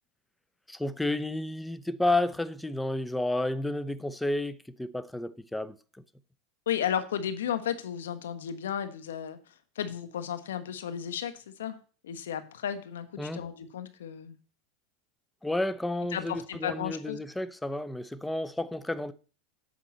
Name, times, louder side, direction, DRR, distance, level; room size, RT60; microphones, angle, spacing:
voice 1, 0.7-5.8 13.2-13.4 15.4-19.1, left 2 dB, 5° left, 0.7 m, -31 dB
voice 2, 6.7-9.4 9.7-11.8 12.0-14.4 16.1-17.2, left 9 dB, 85° left, 1.2 m, -34 dB
8.4 x 5.6 x 7.4 m
hypercardioid pair, 110°, 0 cm